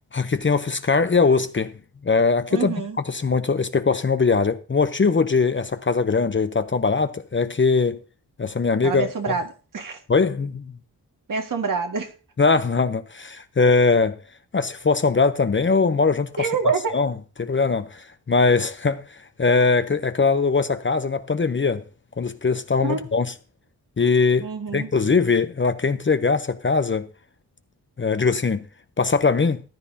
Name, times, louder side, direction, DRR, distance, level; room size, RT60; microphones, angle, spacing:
voice 1, 0.1-1.7 2.0-2.7 3.1-8.0 8.4-9.1 10.1-10.7 12.4-14.2 14.5-16.5 16.9-17.1 17.4-21.8 22.2-23.3 24.0-27.1 28.0-28.7 29.0-29.6, left 4 dB, 30° left, 0.7 m, -21 dB
voice 2, 2.5-3.0 8.8-9.5 9.7-10.0 11.3-12.1 16.4-17.0 22.8-23.0 24.4-24.9, right 4 dB, 55° right, 1.8 m, -26 dB
14.0 x 10.5 x 2.8 m
cardioid pair, 75°, 38 cm